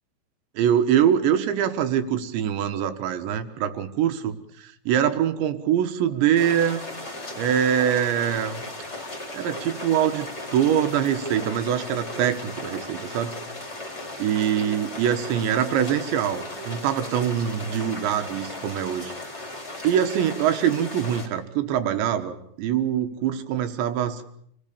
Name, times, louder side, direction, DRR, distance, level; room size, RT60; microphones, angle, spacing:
voice 1, 0.6-6.8 7.4-8.6 9.3-13.4 14.2-19.1 19.8-24.2, right 9 dB, 70° right, 8 dB, 3.3 m, -24 dB
sound 1, 6.3-21.3, left 2 dB, 15° left, 3.5 m, -36 dB
28.0 x 20.0 x 6.9 m, 0.68 s
omnidirectional pair, 6.0 m